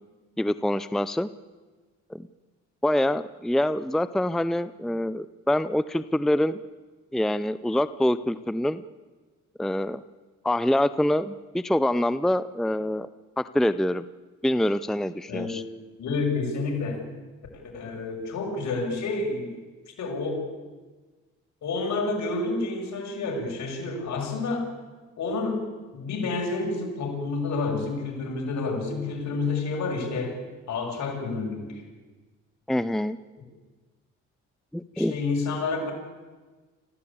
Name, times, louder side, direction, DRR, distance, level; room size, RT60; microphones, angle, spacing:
voice 1, 0.4-1.3 2.1-2.3 2.8-6.6 7.1-8.8 9.6-10.0 10.4-13.1 13.4-14.0 14.4-15.6 32.7-33.2 34.7-35.1, left 1 dB, ahead, 14 dB, 0.6 m, -25 dB
voice 2, 15.3-15.6 16.0-17.0 17.5-19.6 20.0-20.5 21.6-24.7 25.2-25.7 25.9-30.4 30.7-31.8 34.9-35.9, left 3 dB, 65° left, 2 dB, 6.5 m, -29 dB
26.0 x 15.5 x 8.6 m, 1.3 s
cardioid pair, 90°, 30 cm